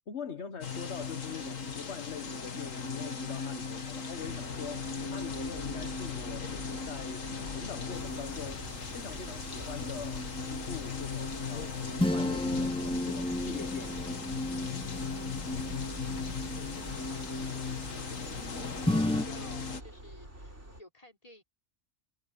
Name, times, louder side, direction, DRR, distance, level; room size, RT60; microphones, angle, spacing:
voice 1, 0.1-7.2 7.5-8.6 8.9-14.1, left 6 dB, 60° left, 1.6 m, -43 dB
sound 1, 0.6-19.8, left 5 dB, 85° left, 2.2 m, -38 dB
sound 2, 4.1-20.8, right 1 dB, 60° right, 7.5 m, -46 dB
sound 3, 7.9-19.2, left 1 dB, 5° left, 0.4 m, -35 dB
voice 2, 15.9-18.2 19.0-21.4, left 1 dB, 30° left, 4.6 m, -55 dB
omnidirectional pair, 1.3 m